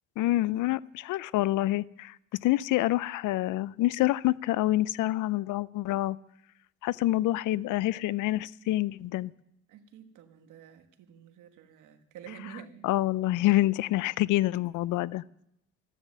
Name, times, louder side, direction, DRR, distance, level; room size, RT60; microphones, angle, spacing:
voice 1, 0.2-2.1 2.4-6.2 6.8-9.3 12.8-15.2, left 16 dB, 85° left, 21 dB, 0.5 m, -27 dB
voice 2, 9.7-12.9, right 9 dB, 85° right, 7 dB, 1.5 m, -48 dB
15.0 x 10.0 x 7.4 m, 0.81 s
cardioid pair, 90°, 30 cm